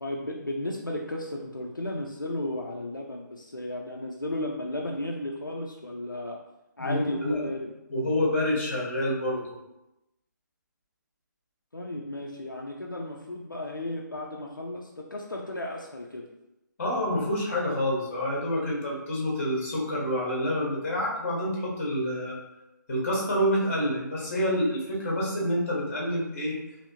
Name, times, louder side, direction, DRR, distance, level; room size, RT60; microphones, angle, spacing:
voice 1, 0.0-6.4 6.8-7.7 11.7-16.3, left 1 dB, 90° left, 0 dB, 0.4 m, -34 dB
voice 2, 6.8-7.4 7.9-9.4 16.8-22.4 22.9-26.5, equal, 40° left, -4 dB, 1.2 m, -27 dB
3.4 x 2.7 x 2.7 m, 0.93 s
figure-of-eight pair, 145°, 11 cm